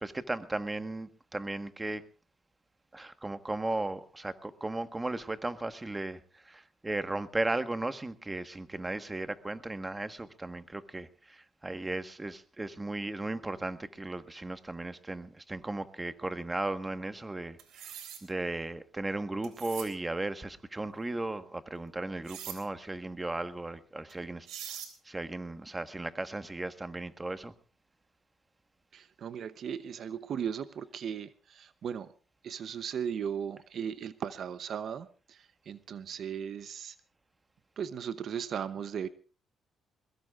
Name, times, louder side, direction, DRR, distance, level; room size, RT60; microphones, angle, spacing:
voice 1, 0.0-2.0 2.9-24.8 25.0-27.5, right 2 dB, 15° right, 10 dB, 1.4 m, -36 dB
sound 1, 17.6-18.2 19.4-19.9 22.3-22.6 24.1-24.2 24.5-24.9, right 9 dB, 85° right, 3.6 m, -42 dB
voice 2, 28.9-32.1 32.4-37.0 37.8-39.1, right 8 dB, 60° right, 14 dB, 0.8 m, -37 dB
21.5 x 21.5 x 2.5 m, 0.37 s
cardioid pair, 90°, 0 cm